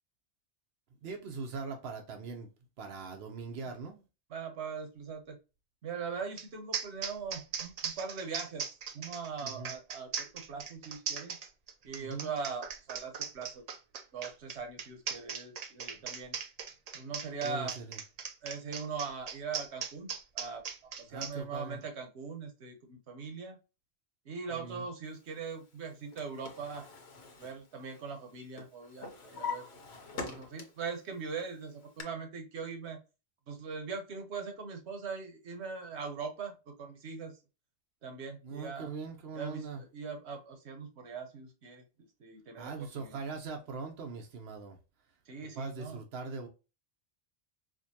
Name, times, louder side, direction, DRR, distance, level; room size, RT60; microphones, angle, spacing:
voice 1, 1.0-2.5 2.8-4.0 9.4-9.7 12.0-12.3 15.9-16.0 17.4-18.0 21.1-21.8 24.5-24.8 38.4-39.8 42.6-44.8 45.6-46.5, right 4 dB, 70° right, 1.0 m, -41 dB
voice 2, 4.3-5.4 5.8-8.7 8.9-11.4 11.8-13.6 14.1-16.4 16.9-17.8 18.4-20.6 21.1-23.6 24.3-26.9 27.4-29.7 30.1-33.0 33.5-37.4 38.0-38.9 39.3-41.8 42.2-43.2 45.3-46.0, right 5 dB, 90° right, 1.2 m, -41 dB
sound 1, 6.4-6.5 6.7-21.3, right 6 dB, 50° right, 0.5 m, -39 dB
Drawer open or close, 25.8-28.3 28.6-30.9 31.3-32.0, left 4 dB, 75° left, 1.1 m, -43 dB
4.9 x 2.2 x 2.7 m
omnidirectional pair, 1.1 m